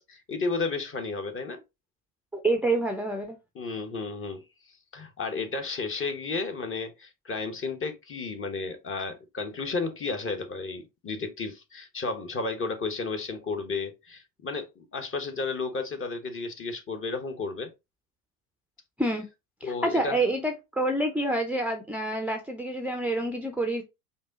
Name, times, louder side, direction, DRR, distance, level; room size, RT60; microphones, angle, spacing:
voice 1, 0.0-1.6 3.5-4.4 4.9-17.7 19.6-20.2, left 3 dB, 25° left, 1.1 m, -33 dB
voice 2, 2.3-3.4 19.0-19.2 19.6-23.8, right 2 dB, 5° right, 0.6 m, -27 dB
5.2 x 2.2 x 3.7 m
hypercardioid pair, 70°, 45 cm